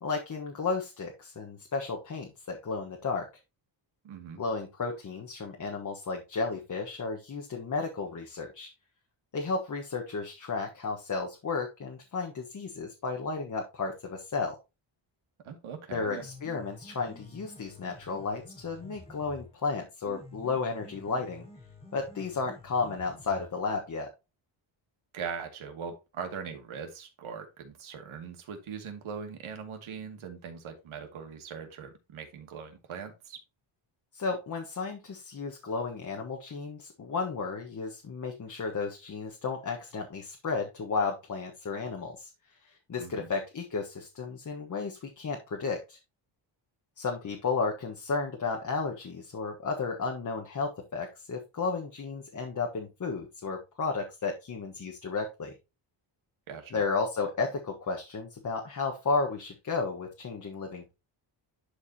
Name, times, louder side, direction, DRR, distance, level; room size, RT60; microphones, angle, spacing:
voice 1, 0.0-3.3 4.4-8.7 9.3-14.6 15.9-21.4 21.9-24.1 34.1-46.0 47.0-55.5 56.7-60.9, left 4 dB, 40° left, 2 dB, 1.3 m, -33 dB
voice 2, 4.0-4.4 15.4-16.3 25.1-33.4 43.0-43.3 56.5-56.8, right 6 dB, 80° right, 5 dB, 2.3 m, -41 dB
Piano, 15.9-23.9, left 2 dB, 10° left, 1.9 m, -50 dB
11.5 x 4.7 x 2.8 m, 0.25 s
wide cardioid pair, 150°, 48 cm